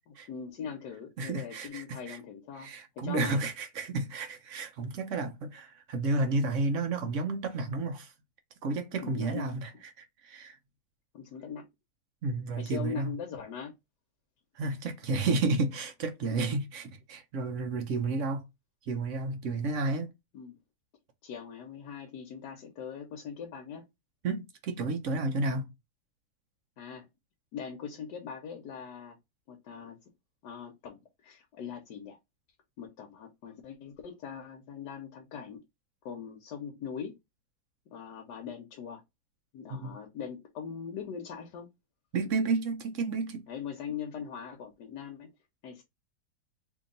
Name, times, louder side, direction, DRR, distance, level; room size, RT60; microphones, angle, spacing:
voice 1, 0.1-2.7 3.0-3.4 9.0-9.5 11.1-11.7 12.6-13.7 16.3-16.6 20.3-20.6 21.2-23.8 26.8-27.1 27.5-29.2 29.5-30.0 30.4-32.2 32.8-35.6 36.0-37.1 37.9-39.0 39.5-41.7 43.5-45.3 45.6-45.8, left 7 dB, 80° left, 1.3 m, -41 dB
voice 2, 1.2-2.2 2.6-8.1 8.6-9.7 10.0-10.6 12.2-13.1 14.5-18.4 18.9-20.1 24.2-25.7 39.7-40.0 42.1-43.4, right 3 dB, 65° right, 0.8 m, -31 dB
2.9 x 2.7 x 3.8 m
omnidirectional pair, 1.8 m